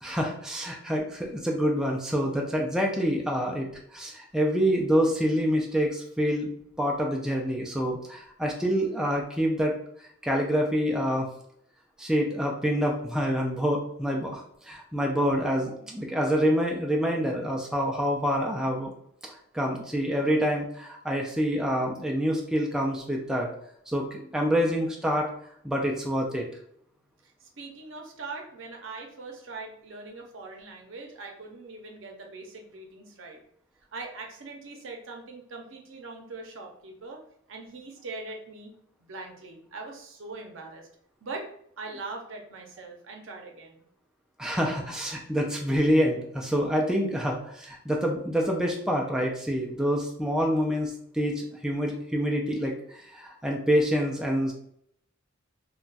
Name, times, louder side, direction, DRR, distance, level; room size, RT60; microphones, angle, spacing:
voice 1, 0.0-6.5 6.8-9.7 10.2-11.3 12.0-18.9 19.2-23.5 23.9-25.3 25.6-26.5 44.4-54.5, equal, 5° right, 0 dB, 0.4 m, -27 dB
voice 2, 27.2-33.4 33.9-37.2 37.5-38.7 39.0-40.9 41.2-41.5 41.8-43.8, right 3 dB, 70° right, 2 dB, 0.6 m, -41 dB
2.3 x 2.2 x 3.9 m, 0.68 s
head